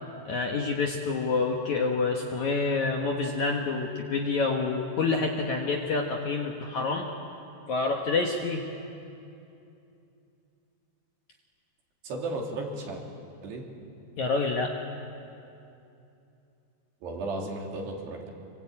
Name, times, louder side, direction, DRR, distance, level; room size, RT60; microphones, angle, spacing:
voice 1, 0.3-7.1 7.7-8.6 14.2-14.7, left 4 dB, 60° left, 1 dB, 2.1 m, -27 dB
voice 2, 12.0-13.0 13.4-13.7 17.0-18.3, right 2 dB, 70° right, 0 dB, 5.2 m, -34 dB
26.0 x 25.0 x 8.8 m, 2.7 s
omnidirectional pair, 4.9 m